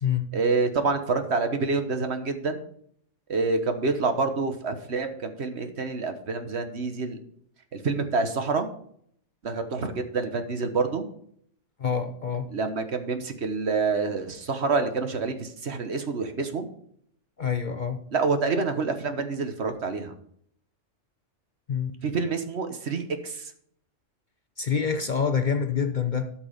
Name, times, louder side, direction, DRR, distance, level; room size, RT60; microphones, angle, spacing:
voice 1, 0.3-2.6 3.3-7.2 7.7-8.7 9.4-11.1 12.5-16.7 18.1-20.1 22.0-23.5, right 4 dB, 60° right, 1.4 m, -27 dB
voice 2, 11.8-12.5 17.4-18.0 21.7-21.9 24.6-26.3, left 6 dB, 45° left, 0.7 m, -26 dB
13.0 x 6.0 x 5.1 m
omnidirectional pair, 1.3 m